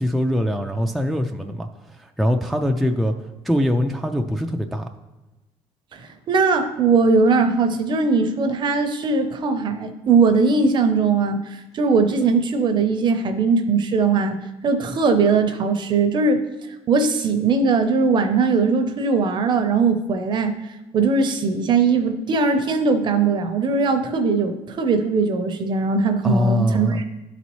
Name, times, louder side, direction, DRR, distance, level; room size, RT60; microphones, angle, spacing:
voice 1, 0.0-1.7 2.0-3.1 3.4-4.9 26.2-27.0, equal, ahead, 3 dB, 0.4 m, -22 dB
voice 2, 5.9-14.4 14.6-16.5 16.9-20.5 20.9-27.1, right 4 dB, 40° right, 7 dB, 0.7 m, -20 dB
11.5 x 4.1 x 3.1 m, 1.1 s
cardioid pair, 110°, 11 cm